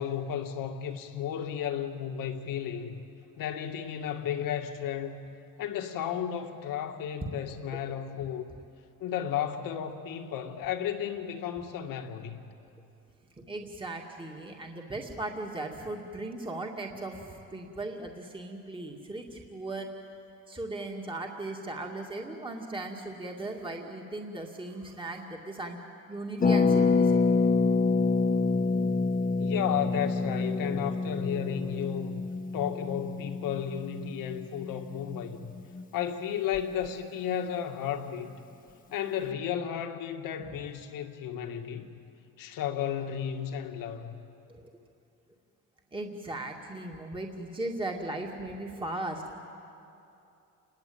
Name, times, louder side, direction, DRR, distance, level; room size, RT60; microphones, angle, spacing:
voice 1, 0.0-3.0 3.4-5.2 5.6-8.5 9.0-12.4 29.4-32.2 32.5-35.5 35.9-38.4 38.9-41.9 42.4-44.2, left 9 dB, 75° left, 5 dB, 2.1 m, -33 dB
voice 2, 13.4-19.9 20.5-25.8 26.1-27.3 44.5-44.7 45.9-49.4, right 2 dB, 15° right, 1 dB, 2.4 m, -37 dB
Harp, 26.4-36.0 36.3-36.4 36.5-36.9, left 4 dB, 25° left, 1.4 m, -27 dB
29.0 x 21.0 x 8.8 m, 2.7 s
cardioid pair, 115°, 34 cm